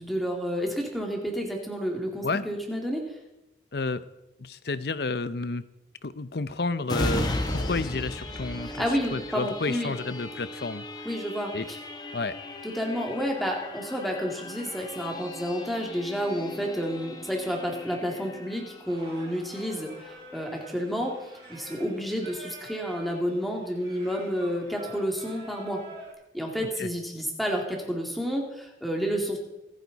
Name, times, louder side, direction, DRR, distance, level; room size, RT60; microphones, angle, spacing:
voice 1, 0.0-3.2 8.6-9.9 11.0-11.8 12.6-21.2 21.5-25.8 26.3-29.4, equal, ahead, 0 dB, 2.4 m, -30 dB
voice 2, 3.7-4.0 4.4-5.6 6.0-10.8 11.5-11.7 12.1-12.4 26.8-26.9, left 3 dB, 70° left, 14 dB, 0.7 m, -31 dB
sound 1, 6.9-20.2 20.6-20.8, left 1 dB, 25° left, 1.3 m, -36 dB
Singing, 18.9-26.1, right 1 dB, 30° right, 6.8 m, -46 dB
26.0 x 9.3 x 4.1 m, 0.96 s
head